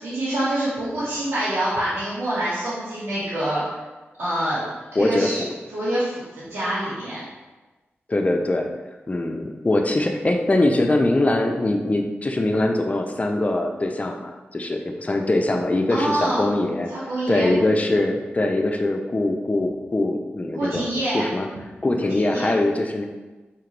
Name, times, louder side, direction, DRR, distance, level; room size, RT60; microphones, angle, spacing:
voice 1, 0.0-3.6 4.2-4.6 5.0-5.4 5.7-7.2 15.9-16.5 16.9-17.5 20.5-21.2 22.0-22.5, right 1 dB, 80° right, -13 dB, 2.0 m, -26 dB
voice 2, 5.0-5.5 8.1-8.7 9.1-16.9 17.3-20.9 21.1-21.5 21.8-23.1, left 2 dB, 35° left, 3 dB, 0.8 m, -22 dB
5.5 x 5.1 x 3.4 m, 1.2 s
cardioid pair, 60°, 4 cm